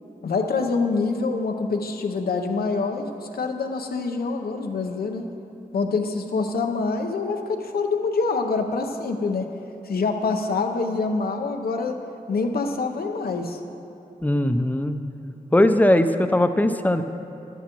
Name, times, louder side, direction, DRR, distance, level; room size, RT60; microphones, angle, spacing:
voice 1, 0.2-5.3 5.7-9.5 9.8-12.0 12.3-13.6, left 4 dB, 85° left, 4 dB, 0.7 m, -25 dB
voice 2, 14.2-15.0 15.5-17.0, left 1 dB, 10° left, 8 dB, 0.6 m, -19 dB
11.5 x 11.0 x 3.0 m, 2.8 s
cardioid pair, 50°, 15 cm